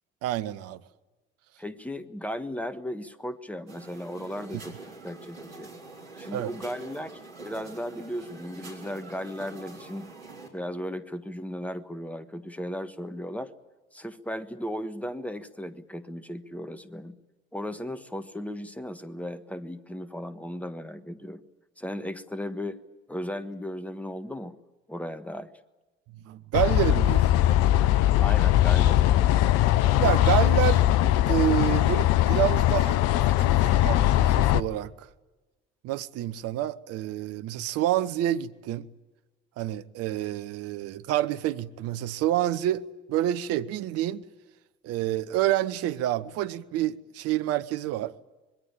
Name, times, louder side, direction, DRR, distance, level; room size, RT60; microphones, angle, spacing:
voice 1, 0.2-0.8 6.3-6.5 26.2-27.4 30.0-30.8 31.2-35.1 35.8-38.9 39.6-44.2 44.8-48.1, right 13 dB, 50° right, 0.9 m, -28 dB
voice 2, 1.6-4.8 5.0-5.7 6.2-10.1 10.5-13.5 13.9-17.2 17.5-21.4 21.8-22.8 23.1-24.6 24.9-25.5 28.2-29.4, left 1 dB, 5° left, 1.4 m, -36 dB
sound 1, 3.7-10.5, right 3 dB, 80° right, 4.0 m, -45 dB
sound 2, 26.5-34.6, left 13 dB, 55° left, 0.7 m, -21 dB
25.5 x 21.0 x 8.9 m
figure-of-eight pair, 50°, 30 cm